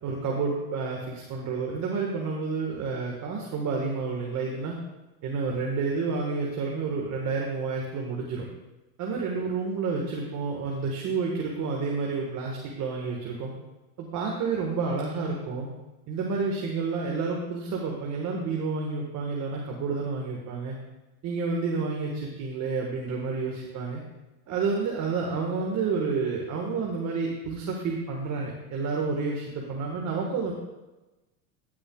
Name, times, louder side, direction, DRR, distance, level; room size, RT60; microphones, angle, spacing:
voice 1, 0.0-4.7 5.2-8.4 9.0-13.5 14.0-15.7 16.1-20.7 21.2-24.0 24.5-30.5, right 4 dB, 40° right, -1 dB, 1.7 m, -30 dB
15.0 x 9.1 x 2.4 m, 1.1 s
supercardioid pair, 120°, 43 cm